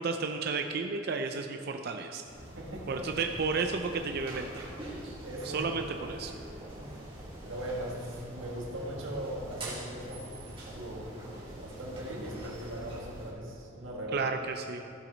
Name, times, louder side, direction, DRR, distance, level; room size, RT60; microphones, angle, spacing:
voice 1, 0.0-2.2 2.9-4.8 5.4-6.3 14.1-14.8, right 4 dB, 55° right, 5 dB, 0.4 m, -32 dB
sound 1, 2.3-13.3, right 1 dB, 30° right, 1.9 m, -44 dB
voice 2, 2.6-3.1 5.2-5.7 6.8-7.0 7.4-11.1 11.6-14.3, right 1 dB, 85° right, -2 dB, 1.7 m, -39 dB
14.5 x 6.1 x 3.9 m, 2.4 s
head